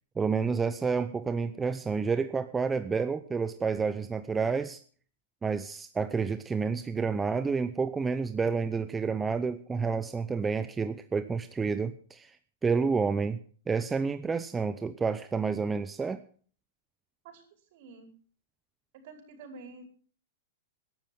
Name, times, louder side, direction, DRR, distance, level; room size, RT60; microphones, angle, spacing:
voice 1, 0.2-4.8 5.4-12.4 12.6-13.4 13.7-16.2, right 5 dB, 15° right, 10 dB, 0.8 m, -29 dB
voice 2, 17.7-18.1 18.9-19.8, right 3 dB, 60° right, 4 dB, 5.1 m, -48 dB
20.5 x 12.0 x 3.6 m, 0.44 s
hypercardioid pair, 120°, 0 cm